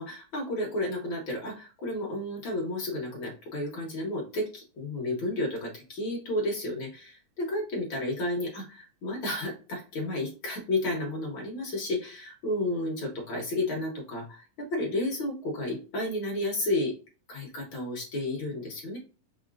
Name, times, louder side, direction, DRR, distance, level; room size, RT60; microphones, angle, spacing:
voice 1, 0.0-16.9 17.3-19.0, left 1 dB, 55° left, -1 dB, 1.4 m, -32 dB
6.4 x 2.9 x 2.4 m, 0.36 s
omnidirectional pair, 3.7 m